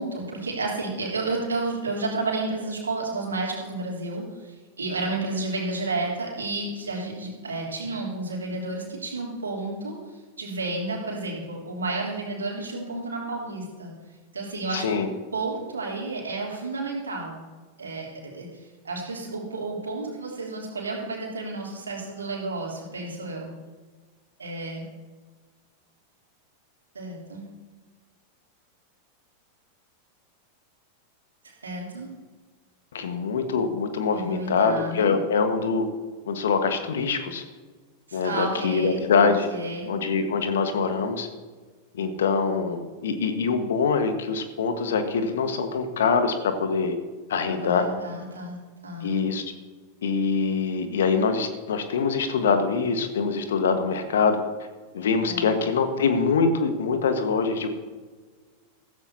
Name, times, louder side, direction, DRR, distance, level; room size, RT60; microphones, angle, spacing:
voice 1, 0.0-13.9 14.3-15.0 15.3-17.4 17.8-23.5 24.4-24.8 26.9-27.4 31.4-32.1 34.1-35.1 38.1-39.9 47.6-49.2 55.2-55.5, right 2 dB, 75° right, -2 dB, 3.3 m, -31 dB
voice 2, 14.7-15.1 32.9-35.9 36.2-37.4 38.1-39.5 39.9-41.3 41.9-46.9 47.3-47.8 49.0-49.5 50.0-54.4 54.9-57.7, left 5 dB, 60° left, 8 dB, 1.4 m, -24 dB
14.5 x 14.5 x 2.8 m, 1.4 s
figure-of-eight pair, 90°, 0 cm